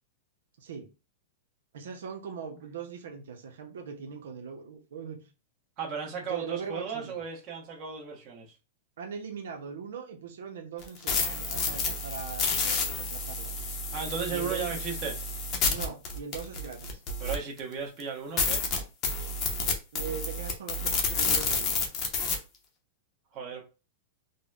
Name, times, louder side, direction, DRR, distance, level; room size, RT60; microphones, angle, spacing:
voice 1, 1.7-5.2 6.3-7.2 9.0-13.5 14.3-14.9 15.7-17.0 19.9-21.8, right 6 dB, 85° right, 0.6 m, -40 dB
voice 2, 5.8-8.4 13.9-15.1 17.2-18.6 23.3-23.6, right 6 dB, 30° right, 1.0 m, -35 dB
sound 1, 10.8-17.6 18.0-18.1 18.4-22.3, left 4 dB, 30° left, 0.7 m, -30 dB
3.9 x 2.1 x 2.3 m
supercardioid pair, 155°, 0 cm